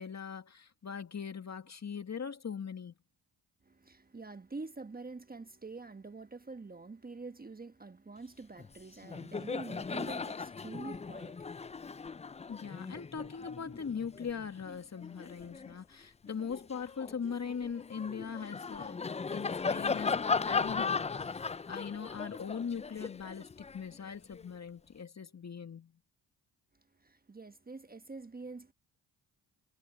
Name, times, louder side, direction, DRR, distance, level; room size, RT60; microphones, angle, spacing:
voice 1, 0.0-2.9 12.5-20.2 20.4-21.4 21.7-25.9, left 6 dB, 40° left, 2.1 m, -40 dB
voice 2, 3.6-11.5 27.0-28.7, right 3 dB, 20° right, 1.3 m, -46 dB
Laughter, 8.6-8.8 9.0-15.8 16.3-24.4, left 5 dB, 15° left, 0.4 m, -37 dB
supercardioid pair, 60°, 43 cm